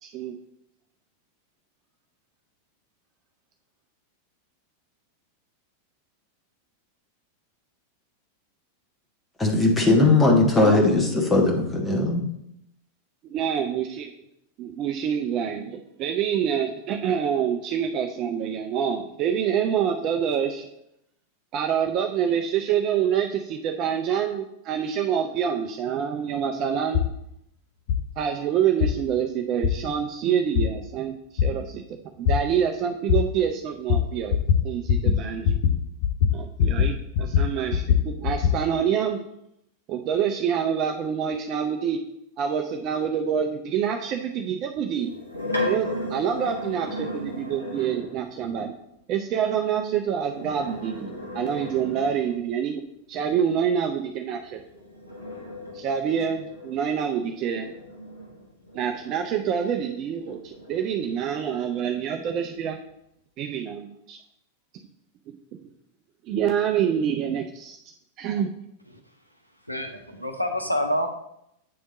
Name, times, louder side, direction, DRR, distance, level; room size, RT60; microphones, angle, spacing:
voice 1, 0.0-0.4 10.6-10.8 13.3-14.1 14.6-20.7 21.5-27.0 28.2-31.2 31.4-34.4 34.6-35.6 36.3-39.2 39.9-42.0 42.4-45.1 45.6-48.7 49.1-52.8 53.1-54.6 55.7-57.7 58.7-62.8 63.4-64.2 66.2-67.8 68.2-68.5, right 8 dB, 35° right, 4 dB, 0.5 m, -26 dB
voice 2, 9.4-12.2, left 2 dB, 15° left, -1 dB, 1.3 m, -19 dB
sound 1, 26.9-27.1 27.9-28.0 28.8-28.9 29.6-29.7 30.6-30.7 31.4-31.5 32.3-32.4 33.1-33.2 33.9-34.0 34.3-34.6 34.9-35.2 35.4-35.7 36.0-36.9 37.2-38.6, left 8 dB, 55° left, 0.8 m, -20 dB
sound 2, 44.9-48.2 50.2-52.5 54.5-59.7 60.2-62.0, left 1 dB, 85° left, 1.2 m, -36 dB
voice 3, 69.7-71.1, left 1 dB, 90° right, 4 dB, 0.6 m, -27 dB
8.5 x 3.5 x 3.8 m, 0.79 s
figure-of-eight pair, 90°, 0 cm